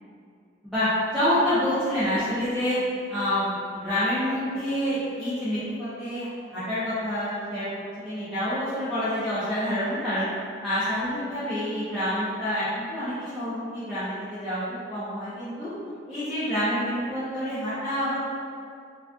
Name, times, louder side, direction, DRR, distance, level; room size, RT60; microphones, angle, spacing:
voice 1, 0.6-2.8 3.1-10.3 10.6-15.7 16.1-18.2, equal, ahead, -16 dB, 0.5 m, -27 dB
2.4 x 2.3 x 2.3 m, 2.3 s
head